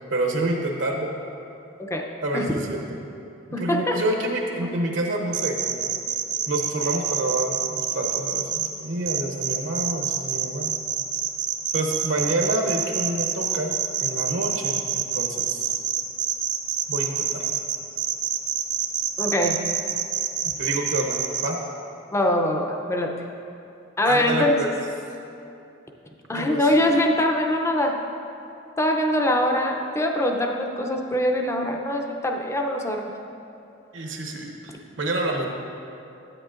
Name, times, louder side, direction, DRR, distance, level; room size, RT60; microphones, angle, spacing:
voice 1, 0.1-1.1 2.2-2.8 3.6-5.9 6.5-10.7 11.7-13.7 14.0-15.7 16.9-17.6 20.4-21.6 24.1-24.7 26.3-26.7 33.9-35.5, right 2 dB, 70° right, 1 dB, 0.8 m, -28 dB
voice 2, 3.5-4.0 4.6-4.7 19.2-19.6 22.1-23.1 24.0-24.6 26.3-28.0 28.8-33.1, left 1 dB, 15° left, 2 dB, 0.5 m, -23 dB
sound 1, 5.3-8.7 9.1-21.5, right 8 dB, 40° right, 0.6 m, -26 dB
9.8 x 8.5 x 2.5 m, 2.7 s
head